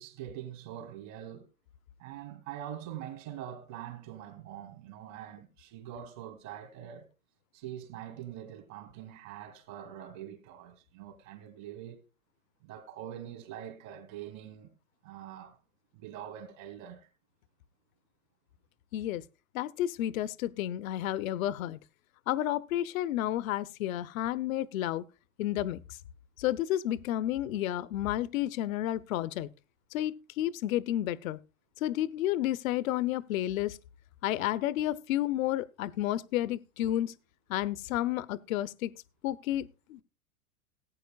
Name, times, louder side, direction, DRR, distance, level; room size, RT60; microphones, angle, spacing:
voice 1, 0.0-1.5 2.0-7.1 7.5-12.0 12.6-14.7 15.0-15.6 15.9-17.1, right 10 dB, 60° right, 3.5 m, -44 dB
voice 2, 18.9-19.2 19.5-21.8 22.3-25.0 25.4-25.8 26.4-29.5 29.9-31.4 31.8-33.8 34.2-37.1 37.5-38.9 39.2-40.0, left 13 dB, 70° left, 0.7 m, -31 dB
19.0 x 9.0 x 2.3 m
hypercardioid pair, 110°, 43 cm